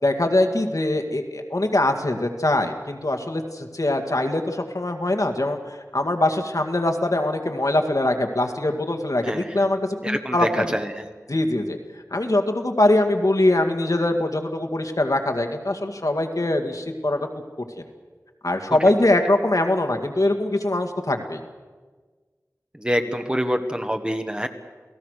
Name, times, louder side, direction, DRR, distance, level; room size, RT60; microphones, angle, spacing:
voice 1, 0.0-10.8 11.3-11.8 12.1-17.3 18.4-21.4, left 1 dB, 65° left, 4 dB, 2.1 m, -22 dB
voice 2, 10.0-11.1 22.8-24.5, equal, 15° right, 6 dB, 1.6 m, -26 dB
28.5 x 17.5 x 6.6 m, 1.4 s
wide cardioid pair, 50°, 6 cm